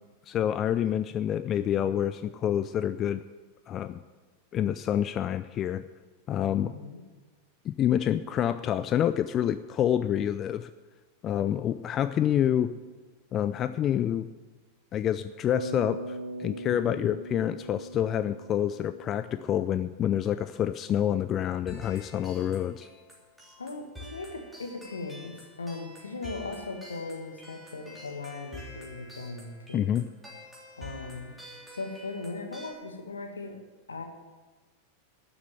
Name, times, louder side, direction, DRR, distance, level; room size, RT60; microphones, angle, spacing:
voice 1, 0.3-3.2 3.7-4.0 4.5-5.8 6.3-6.7 7.6-10.7 11.2-12.7 13.3-14.3 14.9-22.9 29.7-30.1, left 10 dB, 30° left, 13 dB, 0.3 m, -27 dB
voice 2, 6.6-7.0 23.6-30.0 30.8-31.3 31.7-33.6 33.9-34.0, left 3 dB, 75° left, 5 dB, 1.6 m, -38 dB
Bass guitar, 15.5-19.7, right 1 dB, 85° right, 0.7 m, -40 dB
sound 1, 21.7-32.7, left 1 dB, 5° right, 3.4 m, -48 dB
12.5 x 7.0 x 9.0 m, 1.3 s
figure-of-eight pair, 90°, 0 cm